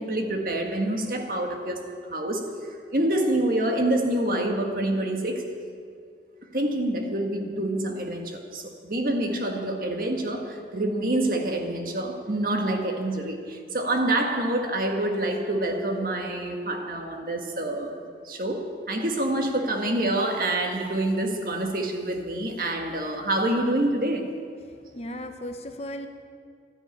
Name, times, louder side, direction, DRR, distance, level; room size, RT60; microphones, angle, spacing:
voice 1, 0.0-5.5 6.5-24.3, right 1 dB, 50° right, 3 dB, 1.7 m, -27 dB
voice 2, 24.6-26.1, equal, 35° left, 6 dB, 0.9 m, -37 dB
13.0 x 10.5 x 9.9 m, 2.2 s
head